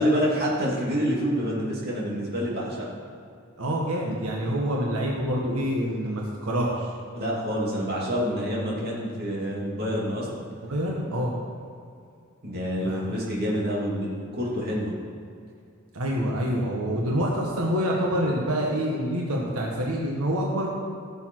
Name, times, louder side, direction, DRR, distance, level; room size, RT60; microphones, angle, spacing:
voice 1, 0.0-2.9 7.1-10.4 12.4-14.9, equal, 45° right, -5 dB, 2.9 m, -27 dB
voice 2, 3.6-6.9 10.7-11.3 12.8-13.0 15.9-20.7, equal, 85° right, -2 dB, 1.5 m, -26 dB
16.5 x 7.0 x 4.7 m, 2.4 s
head